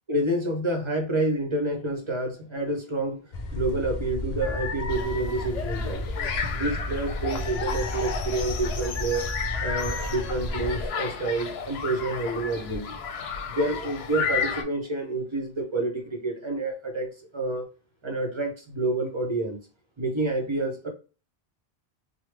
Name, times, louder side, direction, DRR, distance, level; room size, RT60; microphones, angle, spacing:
voice 1, 0.1-3.2 3.5-6.1 6.5-9.3 9.6-13.0 13.5-17.1 17.3-17.7 18.0-19.6 20.0-20.9, right 2 dB, 30° right, 2 dB, 0.6 m, -28 dB
sound 1, 3.3-10.9, left 2 dB, 50° left, 0.5 m, -32 dB
sound 2, 4.9-14.6, left 6 dB, 80° left, 0.8 m, -33 dB
3.2 x 2.1 x 3.2 m, 0.34 s
omnidirectional pair, 1.1 m